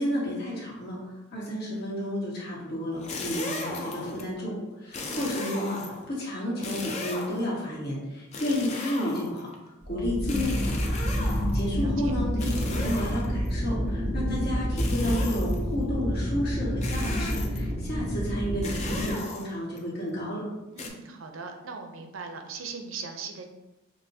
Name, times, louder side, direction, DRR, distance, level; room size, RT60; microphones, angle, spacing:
voice 1, 0.0-20.5, left 1 dB, 50° left, -5 dB, 1.3 m, -32 dB
sound 1, 2.9-4.3 4.9-6.1 6.6-7.5 8.3-9.5 10.3-11.7 12.4-13.5 14.8-15.7 16.8-17.7 18.6-19.8 20.8-20.9, left 3 dB, 35° left, 0.4 m, -36 dB
voice 2, 4.8-5.3 11.5-12.1 20.7-23.5, right 5 dB, 80° right, 4 dB, 0.5 m, -40 dB
sound 2, 9.8-19.1, equal, 5° left, 0.8 m, -28 dB
6.1 x 2.1 x 2.7 m, 0.99 s
head